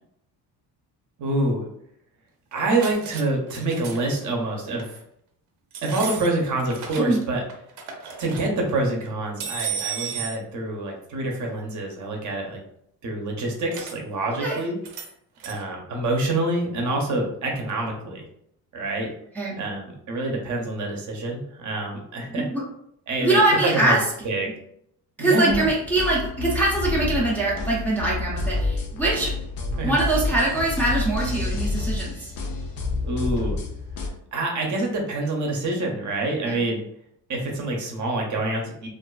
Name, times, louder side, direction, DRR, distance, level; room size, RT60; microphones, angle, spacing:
voice 1, 1.2-1.7 2.5-5.0 5.8-7.4 8.2-12.6 13.0-14.8 15.4-18.2 18.7-19.1 19.6-22.4 23.1-24.0 24.2-24.5 25.2-25.7 29.8-29.9 33.0-33.6 34.3-36.8 37.3-38.9, right 2 dB, 50° right, 0 dB, 0.6 m, -26 dB
sound 1, 2.5-3.2 3.5-4.2 4.7-4.9 5.7-7.2 7.5-8.5 9.4-10.4 13.7-14.0 14.8-15.1 15.4-15.6, right 7 dB, 85° right, 0.6 m, -34 dB
voice 2, 23.2-24.5 25.2-29.3 29.8-32.3 36.5-36.6, right 2 dB, 5° left, -6 dB, 0.4 m, -23 dB
sound 2, 25.5-34.1, left 3 dB, 60° left, 0.6 m, -29 dB
2.4 x 2.3 x 2.2 m, 0.72 s
cardioid pair, 140°, 40 cm